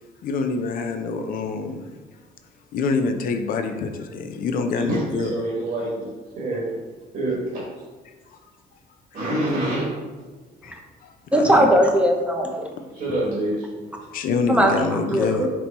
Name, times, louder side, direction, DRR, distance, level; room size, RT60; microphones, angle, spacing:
voice 1, 0.2-1.9 2.7-5.3 10.6-11.7 12.8-12.9 14.1-15.5, left 4 dB, 55° left, 0.5 m, -26 dB
voice 2, 4.8-6.1 6.4-6.7 7.1-7.6 9.1-9.9 12.9-13.9, right 1 dB, 55° right, 1.3 m, -26 dB
voice 3, 11.3-12.7 14.5-15.5, right 1 dB, 5° right, 0.6 m, -19 dB
4.3 x 2.2 x 4.1 m
cardioid pair, 110°, 17 cm